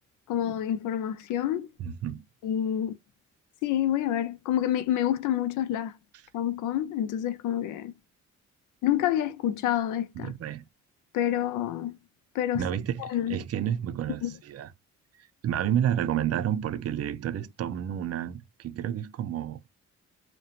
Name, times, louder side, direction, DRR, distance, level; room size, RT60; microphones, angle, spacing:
voice 1, 0.3-1.7 2.4-3.0 3.6-5.9 6.3-7.9 8.8-10.3 11.1-12.0 12.3-12.7 13.0-13.4 14.2-14.3, left 11 dB, 90° left, 0.5 m, -28 dB
voice 2, 1.8-2.2 10.2-10.6 12.5-14.7 15.4-19.7, right 10 dB, 55° right, 0.5 m, -30 dB
2.9 x 2.2 x 2.4 m
cardioid pair, 90°, 30 cm